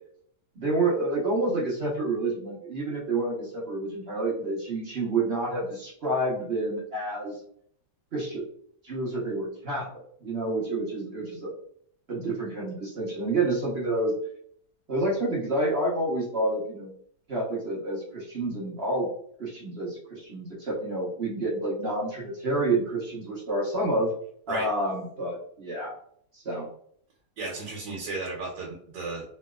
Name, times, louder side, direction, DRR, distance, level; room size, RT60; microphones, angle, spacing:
voice 1, 0.6-7.4 8.1-8.5 8.8-11.5 12.1-14.1 14.9-16.9 17.3-19.1 19.4-24.1 24.5-25.9 26.3-26.7, right 2 dB, 45° right, -4 dB, 0.9 m, -29 dB
voice 2, 27.4-29.2, right 3 dB, 80° right, -2 dB, 1.4 m, -34 dB
3.2 x 3.0 x 2.3 m, 0.63 s
omnidirectional pair, 1.8 m